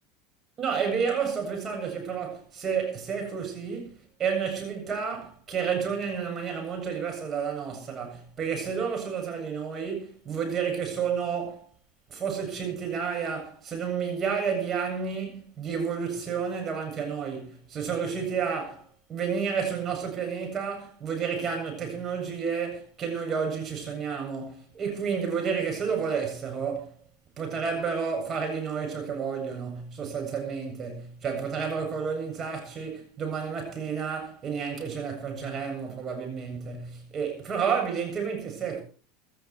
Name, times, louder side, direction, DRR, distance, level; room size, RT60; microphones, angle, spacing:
voice 1, 0.6-3.9 4.2-11.6 12.1-18.8 19.1-27.0 27.4-38.8, right 6 dB, 35° right, 7.8 m, -31 dB
16.5 x 13.0 x 4.6 m
hypercardioid pair, 85°, 0 cm